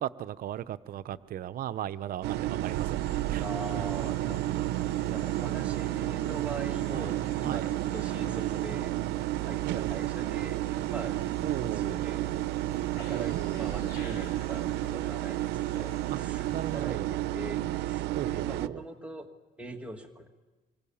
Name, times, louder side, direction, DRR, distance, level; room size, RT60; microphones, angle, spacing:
voice 1, 0.0-3.4 6.9-7.1 7.4-7.7 9.6-9.9 11.4-12.2 13.1-13.7 16.1-16.2 16.5-17.1 18.1-18.8, right 11 dB, 60° right, 14 dB, 0.8 m, -36 dB
sound 1, 2.2-18.7, right 15 dB, 85° right, 0.7 m, -31 dB
sound 2, 2.6-16.8, left 5 dB, 70° left, 7.2 m, -55 dB
voice 2, 3.4-8.9 9.4-10.6 10.9-11.2 11.6-12.5 12.9-19.3 19.6-20.3, right 2 dB, 5° right, 1 dB, 2.0 m, -42 dB
26.0 x 23.0 x 7.2 m, 1.2 s
cardioid pair, 110°, 17 cm